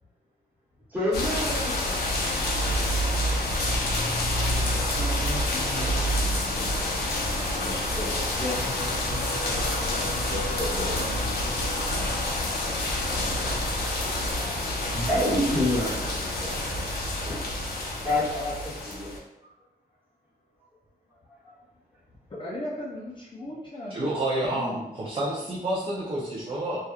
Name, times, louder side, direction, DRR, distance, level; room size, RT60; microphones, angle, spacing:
voice 1, 0.9-1.8 7.3-8.6 9.5-10.0 10.3-11.0 14.9-16.6 17.2-17.4 18.0-19.1 21.5-21.6, left 1 dB, 10° right, -9 dB, 1.2 m, -29 dB
sound 1, 1.1-19.2, left 1 dB, 80° left, 0.5 m, -28 dB
voice 2, 5.0-6.6 7.3-8.6 10.9-12.4 22.3-24.8, left 1 dB, 30° left, -6 dB, 0.5 m, -39 dB
sound 2, 8.4-16.8 17.6-17.8 18.1-18.2, equal, 85° right, 1.0 m, -41 dB
voice 3, 23.9-26.8, right 1 dB, 35° right, -5 dB, 0.5 m, -29 dB
2.8 x 2.3 x 2.3 m, 0.92 s
wide cardioid pair, 110°, 16 cm